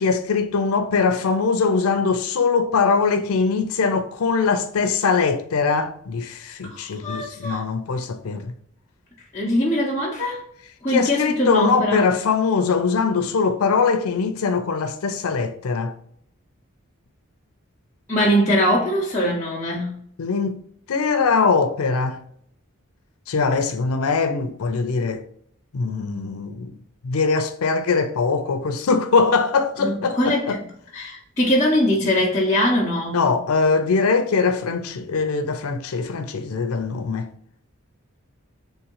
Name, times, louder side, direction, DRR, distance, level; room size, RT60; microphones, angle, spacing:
voice 1, 0.0-8.5 10.9-15.9 20.2-20.6 20.9-22.2 23.3-25.2 25.7-26.7 27.0-30.6 33.1-37.3, left 4 dB, 85° left, 0.5 m, -22 dB
voice 2, 6.6-7.6 9.3-10.4 10.8-12.0 18.1-19.9 29.8-30.6 30.9-33.2, equal, 15° left, 0.8 m, -22 dB
3.6 x 3.4 x 3.0 m
head